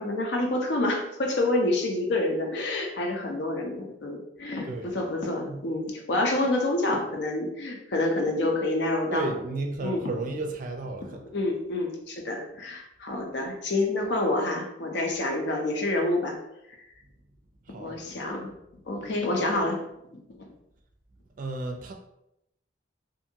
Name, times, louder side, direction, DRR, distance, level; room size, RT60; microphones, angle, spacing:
voice 1, 0.0-9.3 9.8-10.1 11.3-16.4 17.8-18.5 18.9-19.8 20.1-20.2, left 2 dB, 75° left, 1 dB, 0.6 m, -28 dB
voice 2, 9.1-11.2 17.7-18.0 21.4-21.9, right 2 dB, 45° right, 4 dB, 0.4 m, -33 dB
2.7 x 2.5 x 2.7 m, 0.84 s
head